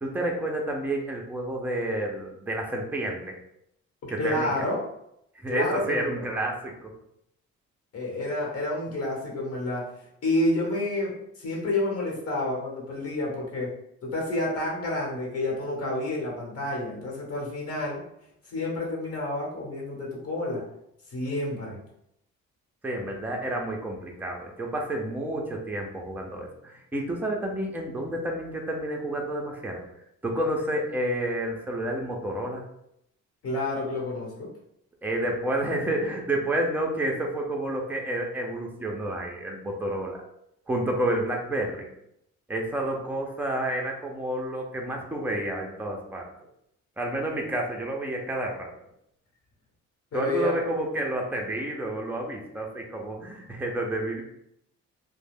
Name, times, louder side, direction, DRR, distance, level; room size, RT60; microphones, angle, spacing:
voice 1, 0.0-3.3 4.1-4.6 5.4-6.9 22.8-29.9 30.2-32.6 35.0-40.2 40.7-41.9 42.5-46.3 47.0-48.7 50.1-54.2, right 1 dB, 5° right, 0 dB, 0.6 m, -30 dB
voice 2, 4.0-4.8 5.5-6.3 7.9-9.9 10.2-13.7 14.0-18.0 18.5-20.6 21.1-21.8 33.4-34.5 50.1-50.6, left 2 dB, 50° left, -2 dB, 1.2 m, -29 dB
2.4 x 2.2 x 3.4 m, 0.76 s
cardioid pair, 90°, 30 cm